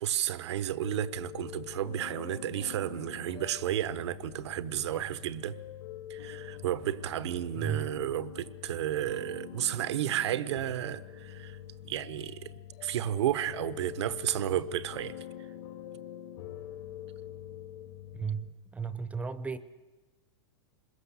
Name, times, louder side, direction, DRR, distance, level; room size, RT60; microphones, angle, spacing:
voice 1, 0.0-5.6 6.1-11.6 11.8-12.5 12.8-15.2, right 12 dB, 80° right, 1.0 m, -32 dB
sound 1, 0.8-18.5, left 11 dB, 65° left, 1.7 m, -45 dB
voice 2, 7.6-7.9 18.1-19.6, right 6 dB, 10° right, 0.6 m, -34 dB
25.5 x 21.5 x 7.0 m
supercardioid pair, 145°, 14 cm